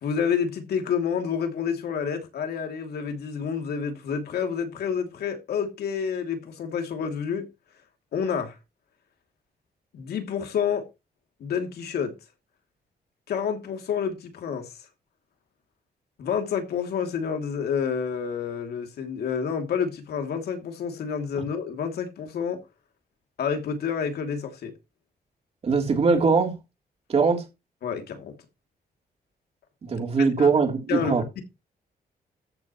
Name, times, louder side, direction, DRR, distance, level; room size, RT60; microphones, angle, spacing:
voice 1, 0.0-7.5 8.1-8.6 9.9-10.9 11.4-12.1 13.3-14.7 16.2-22.6 23.4-24.7 27.8-28.3 30.4-30.5 30.9-31.4, left 7 dB, 85° left, 2.8 m, -29 dB
voice 2, 25.6-26.6 27.1-27.4 29.8-31.2, right 4 dB, 40° right, 3.4 m, -21 dB
14.0 x 8.6 x 3.1 m
wide cardioid pair, 170°, 16 cm